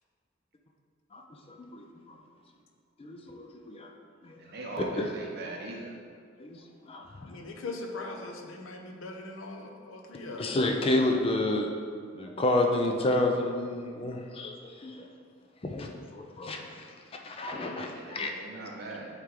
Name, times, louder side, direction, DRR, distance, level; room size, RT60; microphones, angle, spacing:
voice 1, 1.5-2.2 3.0-3.9 4.2-4.4 5.0-5.1 6.4-6.6 6.9-7.0 10.4-11.7 12.1-15.1 15.6-16.9 17.2-18.3, left 2 dB, 25° left, 2 dB, 0.4 m, -30 dB
voice 2, 4.4-6.0 17.9-19.1, right 2 dB, 50° right, -1 dB, 0.9 m, -40 dB
voice 3, 7.2-10.9, left 2 dB, 75° left, 3 dB, 0.7 m, -40 dB
8.6 x 3.2 x 3.7 m, 2.1 s
head